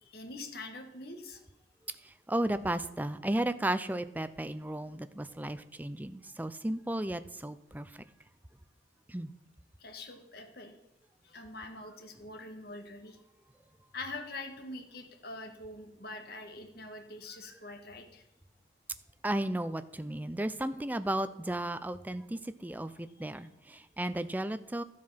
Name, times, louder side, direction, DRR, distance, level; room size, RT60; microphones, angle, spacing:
voice 1, 0.0-1.4 9.8-10.7 11.2-13.2 13.9-18.2 23.2-23.3, left 2 dB, 55° left, 4 dB, 1.7 m, -44 dB
voice 2, 2.0-7.9 9.1-9.3 19.2-24.8, right 1 dB, 10° right, 12 dB, 0.4 m, -34 dB
12.5 x 7.6 x 5.7 m, 0.88 s
head